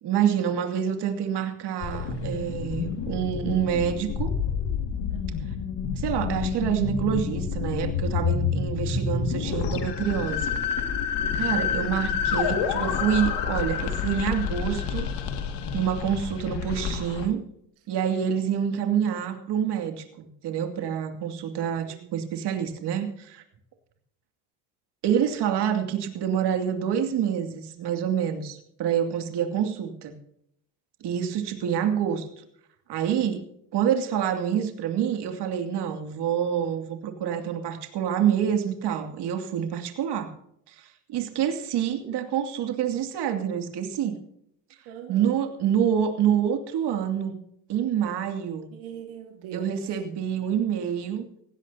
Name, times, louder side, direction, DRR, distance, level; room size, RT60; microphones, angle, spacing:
voice 1, 0.0-4.3 6.0-10.5 11.3-15.1 15.7-17.4 17.9-23.4 25.0-30.1 31.0-32.3 32.9-33.4 33.7-40.3 40.7-44.2 45.1-47.4 47.7-48.7 49.5-51.3, right 9 dB, 55° right, 5 dB, 2.6 m, -27 dB
sound 1, 1.8-17.3, left 6 dB, 60° left, 2.2 m, -28 dB
voice 2, 5.1-5.4 9.1-9.4 11.2-11.8 18.2-18.3 21.8-22.1 29.5-29.6 44.9-45.3 48.7-49.8, right 9 dB, 75° right, 3 dB, 2.0 m, -42 dB
18.0 x 16.0 x 2.8 m, 0.73 s
supercardioid pair, 110°, 47 cm